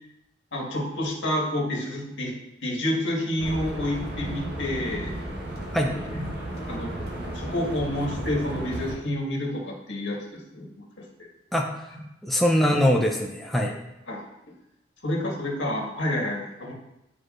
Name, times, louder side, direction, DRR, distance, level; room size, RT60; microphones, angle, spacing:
voice 1, 0.5-2.3 2.6-5.1 6.2-6.3 6.7-6.9 7.3-10.7 14.1-14.2 15.0-16.7, left 1 dB, 85° left, -2 dB, 1.6 m, -29 dB
sound 1, 3.4-9.0, right 1 dB, 60° right, 1.0 m, -34 dB
voice 2, 11.5-11.9 12.2-13.8, equal, ahead, 0 dB, 0.5 m, -23 dB
9.9 x 4.7 x 2.5 m, 0.90 s
head